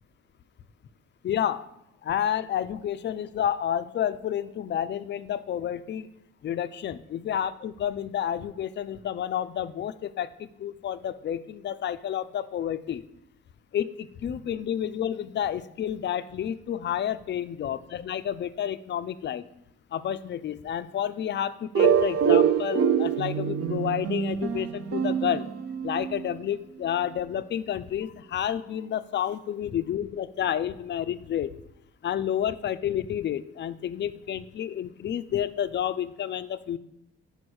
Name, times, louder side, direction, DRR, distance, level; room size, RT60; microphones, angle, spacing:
voice 1, 1.2-1.7 2.0-6.1 6.4-13.0 13.7-19.5 19.9-25.5 25.8-31.5 32.0-36.8, left 10 dB, 40° left, 14 dB, 0.4 m, -30 dB
sound 1, 21.7-26.3, right 8 dB, 50° right, 0.6 m, -25 dB
5.2 x 4.7 x 6.2 m, 0.82 s
cardioid pair, 90°, 30 cm